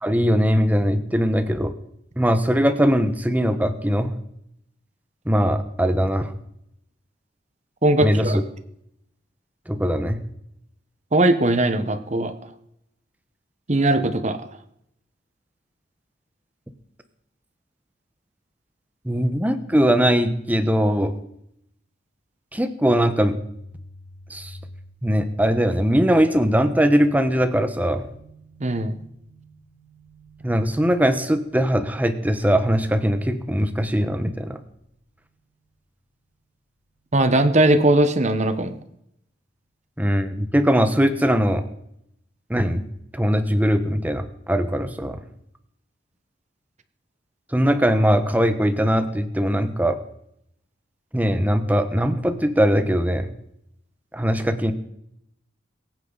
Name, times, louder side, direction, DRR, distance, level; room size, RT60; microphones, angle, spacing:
voice 1, 0.0-1.7 2.2-4.1 5.3-6.3 8.0-8.4 9.7-10.2 19.0-21.1 22.5-23.4 24.3-24.5 25.0-28.0 30.4-34.6 40.0-41.6 42.5-42.8 43.1-45.2 47.5-50.0 51.1-53.3 54.1-54.7, equal, 10° right, 9 dB, 1.1 m, -20 dB
voice 2, 7.8-8.4 11.1-12.3 13.7-14.5 28.6-28.9 37.1-38.8, right 1 dB, 40° right, 9 dB, 1.2 m, -19 dB
sound 1, 22.8-34.4, equal, 80° left, 2.4 m, -47 dB
22.5 x 9.3 x 4.1 m, 0.76 s
head